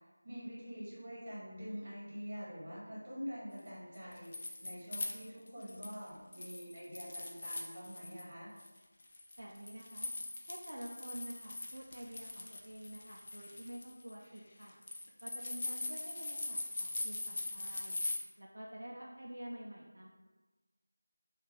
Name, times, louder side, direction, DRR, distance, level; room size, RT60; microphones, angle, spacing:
voice 1, 0.2-8.5, equal, 30° right, -8 dB, 1.3 m, -45 dB
sound 1, 3.9-6.0 6.3-8.2 8.6-18.2, left 2 dB, 30° left, 0.3 m, -42 dB
voice 2, 9.4-10.1 10.5-14.8 15.2-18.0 18.4-20.1, right 1 dB, 65° right, -2 dB, 0.4 m, -48 dB
3.8 x 2.4 x 2.9 m, 1.2 s
figure-of-eight pair, 175°, 0 cm